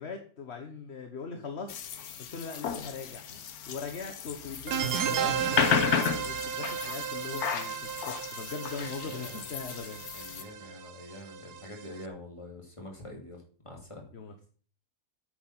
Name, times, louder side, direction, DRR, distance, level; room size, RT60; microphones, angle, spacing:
voice 1, 0.0-3.4 3.7-10.0 14.1-14.5, left 5 dB, 45° left, 6 dB, 1.3 m, -41 dB
sound 1, 1.7-10.4, left 7 dB, 70° left, 1.4 m, -33 dB
sound 2, 4.7-12.0, right 8 dB, 85° right, 1.4 m, -34 dB
voice 2, 8.8-9.5 10.1-14.0, left 1 dB, 20° left, 1 dB, 2.6 m, -46 dB
9.0 x 7.9 x 5.9 m, 0.43 s
omnidirectional pair, 1.6 m